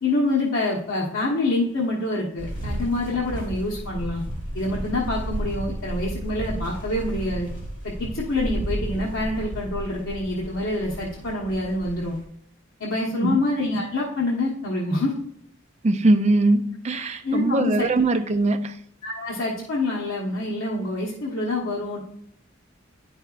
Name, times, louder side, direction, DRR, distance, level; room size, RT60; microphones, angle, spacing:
voice 1, 0.0-4.2 4.5-7.5 8.0-12.2 12.8-15.1 17.2-17.9 19.0-22.0, left 2 dB, 90° left, 1.2 m, -26 dB
sound 1, 2.4-12.2, equal, 40° left, 2.2 m, -33 dB
voice 2, 15.8-18.8, right 2 dB, 35° right, 0.5 m, -21 dB
9.5 x 5.5 x 2.5 m
head